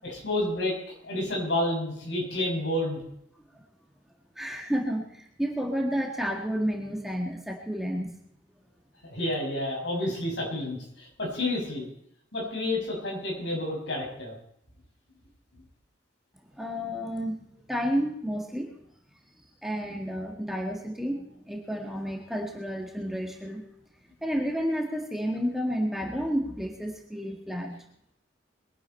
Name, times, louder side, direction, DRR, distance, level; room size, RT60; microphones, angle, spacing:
voice 1, 0.0-0.8 1.0-3.0 9.1-11.9 12.3-14.3, left 1 dB, 65° left, -1 dB, 6.7 m, -30 dB
voice 2, 4.3-8.1 16.5-17.3 17.7-18.8 19.6-23.6 24.2-27.8, equal, ahead, 0 dB, 1.7 m, -31 dB
22.5 x 11.0 x 4.4 m, 0.72 s
head